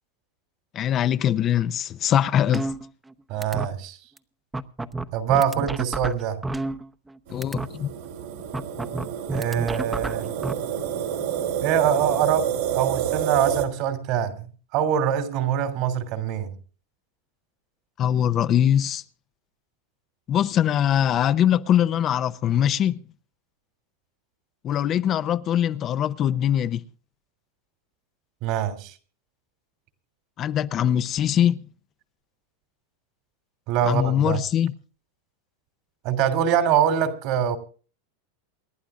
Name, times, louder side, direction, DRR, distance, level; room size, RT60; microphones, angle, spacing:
voice 1, 0.7-2.7 7.3-7.9 18.0-19.0 20.3-23.0 24.6-26.8 30.4-31.6 33.8-34.7, left 10 dB, 35° left, 0.6 m, -22 dB
sound 1, 2.5-3.1 3.4-3.7 4.2-4.3 4.5-7.1 7.4-7.7 8.5-10.5, right 2 dB, 10° right, 0.9 m, -30 dB
voice 2, 3.3-4.0 5.1-6.4 9.3-10.3 11.6-14.5 14.7-16.5 28.4-28.9 33.7-34.4 36.0-37.6, right 9 dB, 55° right, 3.0 m, -24 dB
sound 2, 7.3-13.7, right 10 dB, 75° right, 3.0 m, -28 dB
28.0 x 11.5 x 2.5 m
hypercardioid pair, 110°, 0 cm